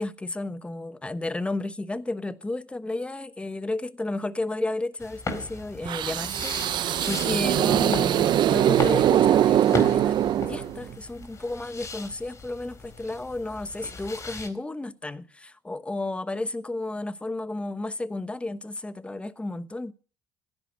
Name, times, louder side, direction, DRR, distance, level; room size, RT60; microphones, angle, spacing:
voice 1, 0.0-10.1 10.5-19.9, left 2 dB, 10° left, 1.1 m, -32 dB
sound 1, 5.0-14.5, left 4 dB, 35° left, 4.3 m, -38 dB
sound 2, 5.9-10.9, right 11 dB, 55° right, 0.8 m, -22 dB
15.5 x 10.5 x 6.3 m
hypercardioid pair, 75°, 9 cm